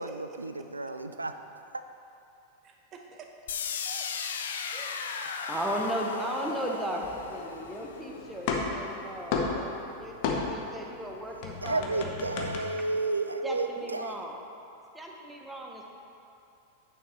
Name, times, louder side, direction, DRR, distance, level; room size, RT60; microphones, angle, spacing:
voice 1, 0.0-1.4 1.7-1.8 11.6-14.2, right 3 dB, 80° right, 9 dB, 0.3 m, -32 dB
voice 2, 2.6-3.3 3.8-4.1 4.7-5.9 13.8-14.2, right 5 dB, 30° right, 2 dB, 0.8 m, -49 dB
sound 1, 3.5-9.4, left 6 dB, 65° left, 0.4 m, -37 dB
voice 3, 4.8-5.1 5.5-12.1 13.4-14.4 14.9-15.8, right 1 dB, 10° right, 0 dB, 0.9 m, -36 dB
sound 2, 7.0-8.0 8.2-10.8 11.0-12.6, left 4 dB, 45° left, 0.9 m, -32 dB
8.9 x 6.7 x 3.2 m, 2.7 s
figure-of-eight pair, 90°, 0 cm